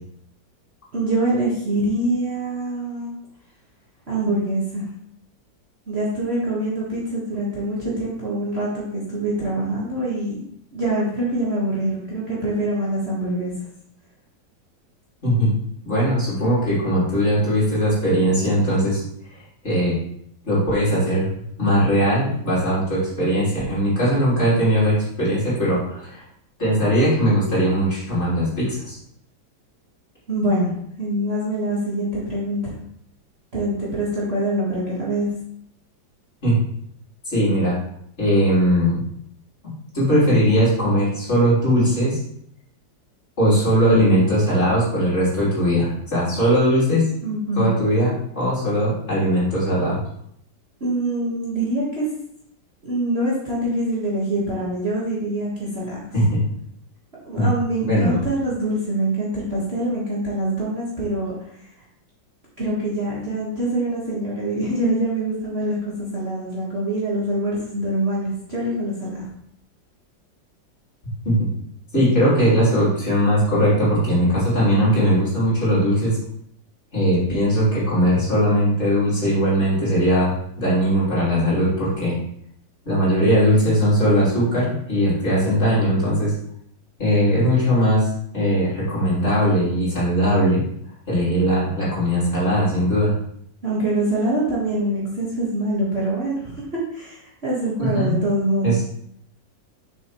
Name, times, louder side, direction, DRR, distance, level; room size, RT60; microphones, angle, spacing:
voice 1, 0.9-3.1 4.1-4.8 5.9-10.4 10.7-13.5 30.3-30.7 31.0-32.7 33.5-35.3 47.2-47.7 50.8-52.1 52.8-56.1 57.2-61.4 62.6-69.2 93.6-96.6 96.9-98.8, right 1 dB, 35° right, -7 dB, 1.8 m, -24 dB
voice 2, 15.8-19.0 19.6-20.0 20.4-21.3 21.6-26.2 26.6-29.0 36.4-36.6 37.3-37.7 38.2-39.0 39.9-42.2 43.4-47.1 47.6-50.0 56.1-56.4 57.3-57.5 57.8-58.2 71.2-71.3 71.9-76.2 76.9-82.1 82.9-86.3 87.0-90.6 91.1-93.1 97.8-98.1 98.6-98.8, equal, 35° left, -9 dB, 3.6 m, -19 dB
6.9 x 6.8 x 3.1 m, 0.70 s
omnidirectional pair, 2.1 m